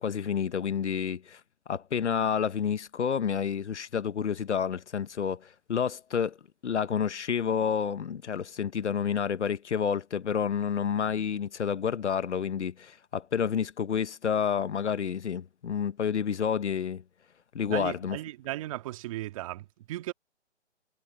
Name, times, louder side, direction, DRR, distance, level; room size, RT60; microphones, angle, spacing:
voice 1, 0.0-1.4 1.7-6.4 6.6-17.0 17.5-18.2, left 7 dB, 75° left, 1.3 m, -29 dB
voice 2, 17.7-20.1, right 16 dB, 30° right, 1.8 m, -36 dB
hypercardioid pair, 155°, 35 cm